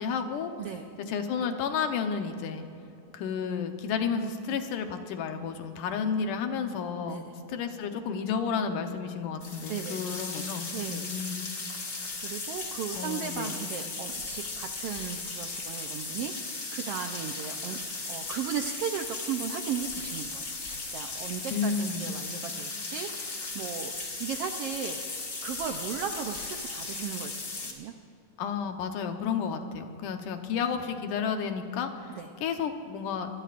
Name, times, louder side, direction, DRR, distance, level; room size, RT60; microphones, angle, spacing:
voice 1, 0.0-0.5 1.1-2.6 3.1-11.5 13.0-13.6 21.5-22.2 28.4-33.3, left 6 dB, 85° left, 6 dB, 2.6 m, -32 dB
sound 1, 9.4-27.7, left 3 dB, 30° left, 1.6 m, -37 dB
voice 2, 9.7-10.2 10.7-11.2 12.2-17.8 18.1-20.5 20.9-27.9 32.2-32.3, right 7 dB, 80° right, 5 dB, 1.3 m, -36 dB
26.0 x 19.5 x 2.5 m, 2.8 s
omnidirectional pair, 3.5 m